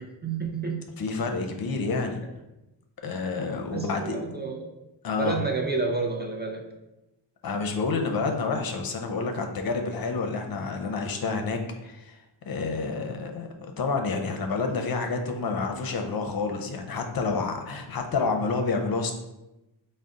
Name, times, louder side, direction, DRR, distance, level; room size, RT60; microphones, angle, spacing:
voice 1, 0.0-0.9 3.7-4.7 5.2-6.6, right 4 dB, 25° right, 0 dB, 0.4 m, -29 dB
voice 2, 1.0-2.2 3.0-4.2 5.0-5.4 7.4-12.2 12.5-19.1, left 4 dB, 55° left, 4 dB, 0.5 m, -29 dB
3.9 x 2.1 x 3.6 m, 0.98 s
cardioid pair, 80°, 44 cm